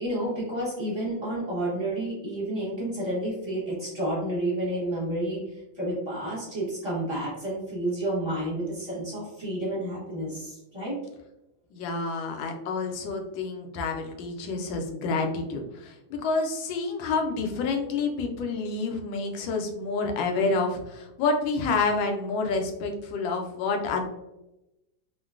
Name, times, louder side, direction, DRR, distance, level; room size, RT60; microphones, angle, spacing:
voice 1, 0.0-11.0, right 1 dB, 30° right, -8 dB, 0.5 m, -30 dB
voice 2, 11.7-24.0, left 3 dB, 75° left, 3 dB, 1.3 m, -28 dB
3.7 x 2.1 x 2.3 m, 0.91 s
omnidirectional pair, 2.3 m